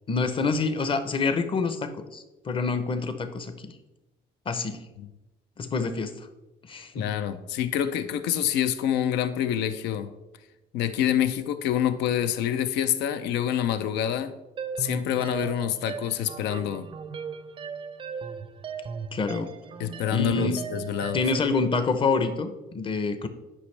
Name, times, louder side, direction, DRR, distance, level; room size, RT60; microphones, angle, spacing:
voice 1, 0.1-3.7 4.5-4.8 5.6-6.3 6.7-7.1 19.1-19.5 20.1-20.6 21.1-23.3, left 4 dB, 30° left, 9 dB, 0.7 m, -27 dB
voice 2, 6.9-10.1 10.7-14.3 14.8-16.9 19.8-21.2, left 10 dB, 85° left, 12 dB, 0.5 m, -27 dB
sound 1, 14.6-21.4, right 6 dB, 30° right, 0.5 m, -37 dB
9.9 x 5.2 x 3.3 m, 1.0 s
cardioid pair, 110°, 17 cm